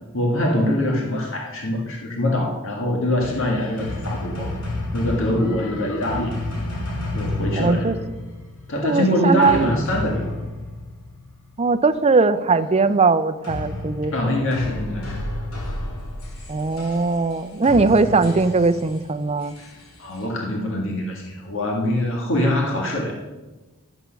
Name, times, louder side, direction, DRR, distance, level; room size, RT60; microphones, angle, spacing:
voice 1, 0.1-4.5 4.9-6.3 7.1-8.0 8.7-10.4 14.1-15.2 20.0-23.2, left 1 dB, 65° left, -1 dB, 1.8 m, -23 dB
sound 1, 3.2-11.6 13.4-20.2, left 1 dB, 80° left, 2.5 m, -31 dB
voice 2, 7.6-7.9 8.8-9.7 11.6-14.1 16.5-19.5, right 3 dB, 30° right, 11 dB, 0.5 m, -19 dB
12.5 x 8.9 x 5.8 m, 1.2 s
head